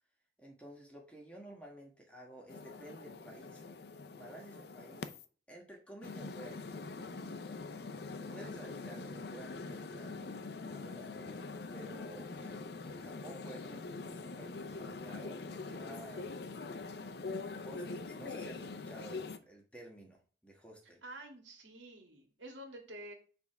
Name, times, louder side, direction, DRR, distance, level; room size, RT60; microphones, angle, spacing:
voice 1, 0.4-3.6 4.1-5.2 5.5-7.5 8.3-10.4 10.7-16.6 17.4-21.0, right 1 dB, 5° left, 0 dB, 1.4 m, -52 dB
sound 1, 2.5-5.3 6.0-19.4, left 3 dB, 60° left, 0.5 m, -44 dB
voice 2, 21.0-23.1, right 1 dB, 85° right, 2 dB, 1.9 m, -49 dB
7.2 x 3.5 x 4.6 m, 0.39 s
head